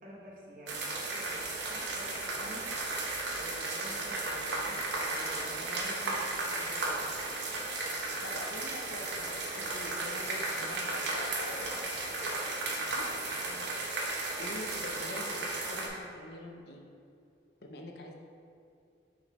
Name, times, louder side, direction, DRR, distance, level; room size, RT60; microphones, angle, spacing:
voice 1, 0.0-2.7 3.3-7.1 13.3-13.7, equal, 50° right, -4 dB, 1.1 m, -49 dB
sound 1, 0.7-15.9, right 2 dB, 80° right, 0.9 m, -35 dB
voice 2, 8.2-12.5 12.8-13.1 14.4-16.8 17.6-18.1, left 1 dB, 60° left, 1 dB, 0.7 m, -45 dB
6.3 x 4.1 x 3.6 m, 2.4 s
head